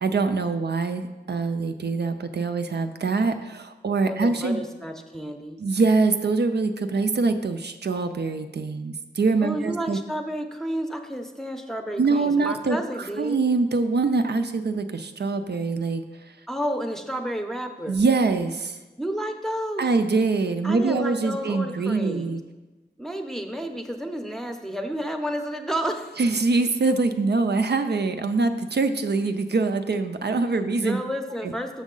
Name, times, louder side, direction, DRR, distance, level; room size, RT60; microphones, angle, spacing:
voice 1, 0.0-4.6 5.6-10.0 12.0-16.4 17.9-18.8 19.8-22.4 26.2-31.0 31.4-31.5, right 3 dB, 70° right, 7 dB, 0.4 m, -24 dB
voice 2, 4.0-5.6 9.4-13.4 16.5-18.0 19.0-19.9 20.6-22.4 23.0-26.2 30.8-31.8, equal, ahead, 4 dB, 0.6 m, -31 dB
6.3 x 6.2 x 3.8 m, 1.1 s
wide cardioid pair, 60°, 18 cm